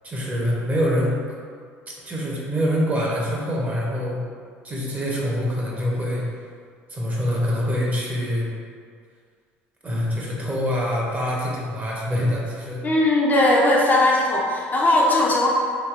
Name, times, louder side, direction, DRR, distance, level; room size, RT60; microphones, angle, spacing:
voice 1, 0.0-1.2 2.0-4.2 4.6-6.2 6.9-8.5 9.8-12.8, equal, 25° right, -4 dB, 0.8 m, -25 dB
voice 2, 12.8-15.5, left 1 dB, 25° left, -3 dB, 0.5 m, -18 dB
3.2 x 2.5 x 2.4 m, 2.1 s
hypercardioid pair, 70°, 6 cm